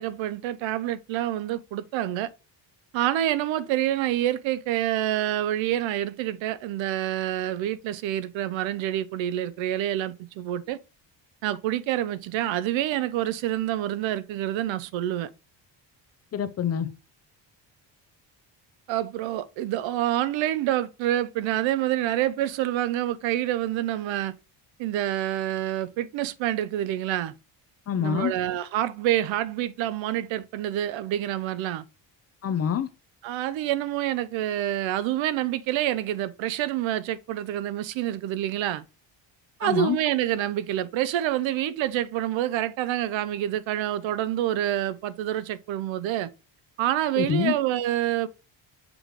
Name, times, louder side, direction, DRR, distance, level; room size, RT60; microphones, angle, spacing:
voice 1, 0.0-2.3 2.9-10.8 11.4-15.3 18.9-24.3 24.8-27.3 28.0-31.8 33.2-38.8 39.6-46.3 46.8-48.3, right 13 dB, 85° right, 0.6 m, -27 dB
voice 2, 16.3-16.9 27.9-28.3 32.4-32.9 39.6-40.0 47.2-47.6, left 9 dB, 35° left, 0.5 m, -26 dB
6.1 x 3.1 x 5.1 m
cardioid pair, 155°, 45 cm